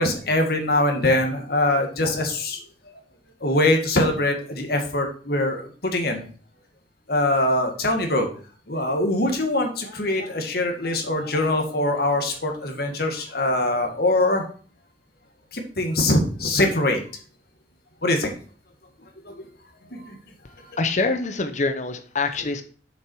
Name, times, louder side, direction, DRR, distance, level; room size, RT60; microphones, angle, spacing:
voice 1, 0.0-2.6 3.4-6.2 7.1-8.3 8.7-14.4 15.5-17.0 18.0-18.3 19.3-19.5 19.9-20.2, left 1 dB, 60° left, 4 dB, 2.0 m, -23 dB
voice 2, 20.8-22.6, left 3 dB, 45° left, 8 dB, 0.8 m, -25 dB
7.2 x 6.1 x 4.6 m, 0.41 s
head